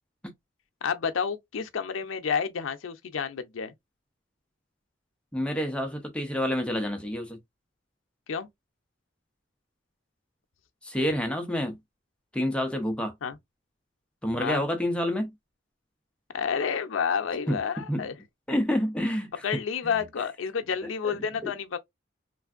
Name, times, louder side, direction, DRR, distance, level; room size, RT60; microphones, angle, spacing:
voice 1, 0.8-3.7 8.3-8.5 13.2-13.4 14.4-14.6 16.3-18.1 19.4-21.8, left 6 dB, 90° left, 0.5 m, -30 dB
voice 2, 5.3-7.4 10.8-11.8 12.3-13.1 14.2-15.3 17.5-17.6 17.9-18.0 18.5-19.5 19.8-20.0 21.1-21.2 21.4-21.5, equal, 5° left, 0.5 m, -28 dB
3.3 x 2.5 x 2.3 m
head